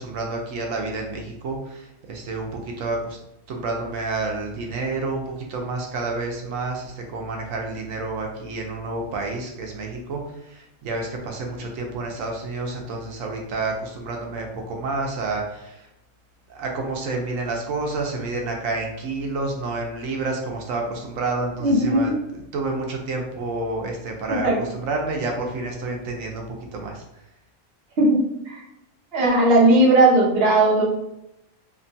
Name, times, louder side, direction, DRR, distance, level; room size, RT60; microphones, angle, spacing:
voice 1, 0.0-3.2 3.5-10.2 10.5-15.9 16.5-22.1 22.5-27.0, right 3 dB, 80° right, 1 dB, 1.0 m, -29 dB
voice 2, 21.6-22.2 24.3-24.6 28.0-28.6 29.1-30.8, right 2 dB, 55° right, -3 dB, 0.9 m, -17 dB
2.9 x 2.2 x 2.6 m, 0.86 s
omnidirectional pair, 1.4 m